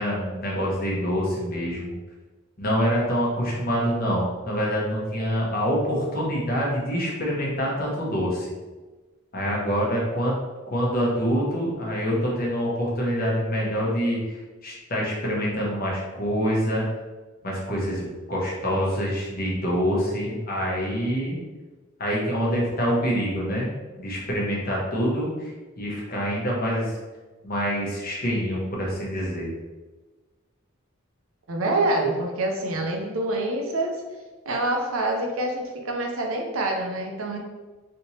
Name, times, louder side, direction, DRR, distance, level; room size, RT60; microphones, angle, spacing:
voice 1, 0.0-1.9 2.6-8.5 9.3-10.3 10.7-16.9 17.4-21.4 22.0-23.7 24.0-27.0 27.4-29.5, equal, 45° left, -4 dB, 0.9 m, -26 dB
voice 2, 31.5-34.0 34.5-37.4, right 2 dB, 75° right, 1 dB, 0.6 m, -26 dB
3.4 x 2.9 x 2.8 m, 1.3 s
head